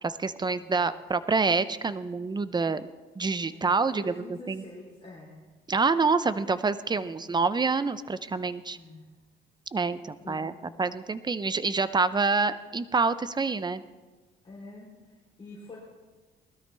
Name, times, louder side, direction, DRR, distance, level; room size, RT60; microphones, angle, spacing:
voice 1, 0.0-4.6 5.7-8.8 9.7-10.5 10.8-13.8, right 4 dB, 20° right, 14 dB, 0.6 m, -27 dB
voice 2, 3.5-5.4 7.0-7.3 8.7-9.1 10.2-10.8 14.4-15.8, left 2 dB, 25° left, -5 dB, 3.7 m, -46 dB
19.5 x 13.0 x 3.4 m, 1.3 s
cardioid pair, 90°, 20 cm